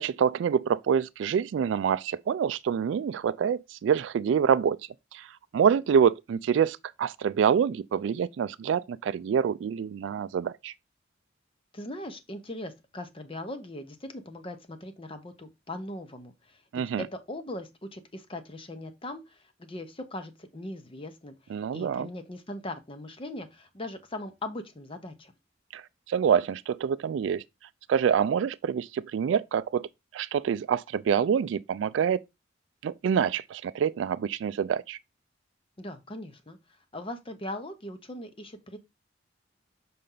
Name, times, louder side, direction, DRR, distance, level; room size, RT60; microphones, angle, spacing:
voice 1, 0.0-4.8 5.1-10.7 16.7-17.0 21.5-22.1 25.7-27.4 27.9-29.9 30.1-32.2 32.8-35.0, right 7 dB, 75° right, 0.3 m, -26 dB
voice 2, 11.7-16.6 17.0-25.3 35.8-36.6 36.9-38.8, left 1 dB, 30° left, 0.8 m, -40 dB
6.8 x 4.3 x 3.8 m
head